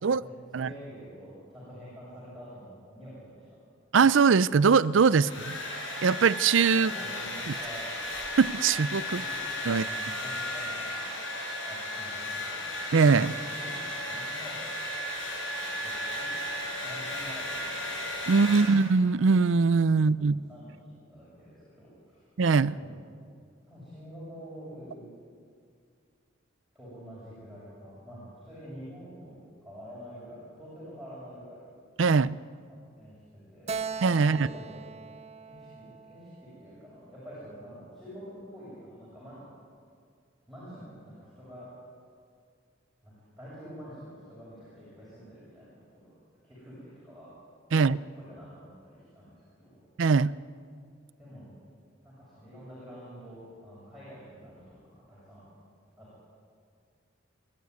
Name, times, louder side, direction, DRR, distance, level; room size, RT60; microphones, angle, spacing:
voice 1, 0.0-3.6 5.2-5.3 6.7-7.8 9.1-9.4 9.7-11.2 11.6-12.7 13.2-14.7 15.8-16.3 16.6-18.0 19.9-22.3 22.7-22.9 23.6-25.2 26.7-31.6 32.7-33.2 33.5-33.9 34.2-34.8 35.4-36.3 36.6-39.4 40.5-41.7 43.0-46.1 46.4-47.3 47.7-49.8 51.2-51.5 52.0-54.6 55.1-55.4 56.0-56.2, equal, ahead, -10 dB, 7.2 m, -47 dB
voice 2, 3.9-5.6 6.0-6.9 8.4-9.2 9.7-9.8 12.9-13.3 18.3-20.4 22.4-22.7 32.0-32.4 34.0-34.5 47.7-48.0 50.0-50.3, right 5 dB, 75° right, 18 dB, 0.5 m, -22 dB
Domestic sounds home sounds, 4.8-19.1, left 1 dB, 80° left, 6.6 m, -35 dB
Keyboard (musical), 33.7-37.1, right 5 dB, 30° right, 0.6 m, -40 dB
28.5 x 12.0 x 9.6 m, 2.2 s
head